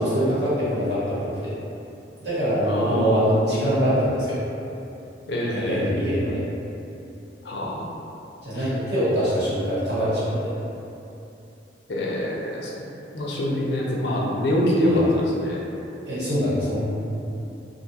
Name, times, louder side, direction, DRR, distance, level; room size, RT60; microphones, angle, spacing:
voice 1, 0.0-1.5 2.2-4.4 5.6-6.4 8.4-10.5 14.9-15.0 16.1-16.8, equal, 65° right, -12 dB, 1.1 m, -23 dB
voice 2, 2.6-3.3 5.3-6.0 7.4-7.9 8.5-8.7 11.9-12.7 13.1-15.6, left 1 dB, 65° left, -3 dB, 0.4 m, -25 dB
2.5 x 2.3 x 2.7 m, 2.7 s
head